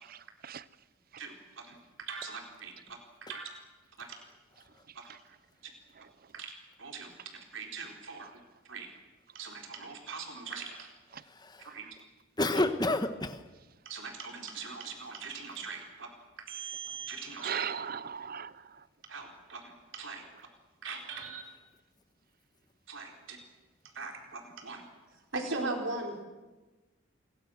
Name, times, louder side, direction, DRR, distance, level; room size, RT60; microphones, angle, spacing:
voice 1, 0.0-0.6 5.1-5.2 17.4-18.8, right 7 dB, 45° right, 0.7 m, -38 dB
voice 2, 1.2-3.5 4.0-4.1 6.3-6.5 6.8-8.3 8.7-8.9 9.3-10.9 11.6-11.8 12.5-12.6 13.9-16.1 16.4-17.7 19.1-20.2 20.8-21.4 22.9-23.4 23.9-24.8 25.3-26.3, right 4 dB, 70° right, 4.1 m, -40 dB
voice 3, 11.3-11.7 12.4-13.4, left 2 dB, 20° left, 1.3 m, -29 dB
28.0 x 22.5 x 6.4 m
head